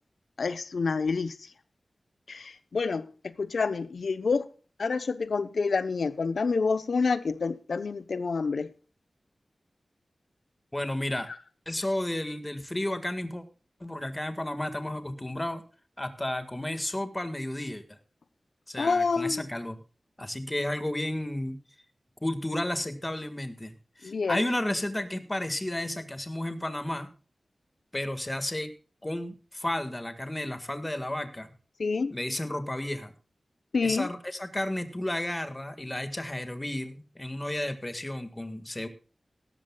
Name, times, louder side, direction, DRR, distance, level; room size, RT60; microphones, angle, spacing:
voice 1, 0.4-1.3 2.3-4.5 4.8-8.7 11.3-11.4 18.8-19.4 24.0-24.5 31.8-32.1 33.7-34.1, left 4 dB, 85° left, 0.9 m, -28 dB
voice 2, 10.7-11.3 11.7-13.4 13.8-15.6 16.0-18.0 18.7-19.8 20.2-21.6 22.2-27.1 27.9-28.7 29.0-31.5 32.1-33.1 33.8-38.9, left 1 dB, 20° left, 1.8 m, -32 dB
17.0 x 13.5 x 2.4 m
wide cardioid pair, 80°, 0 cm